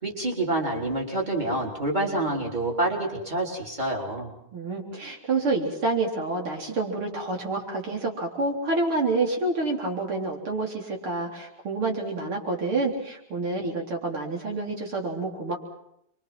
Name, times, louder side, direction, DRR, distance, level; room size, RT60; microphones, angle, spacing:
voice 1, 0.0-4.3, right 2 dB, 20° right, -2 dB, 4.6 m, -27 dB
voice 2, 4.5-15.6, right 3 dB, 80° right, 0 dB, 4.6 m, -28 dB
28.5 x 24.0 x 6.1 m, 0.76 s
omnidirectional pair, 2.3 m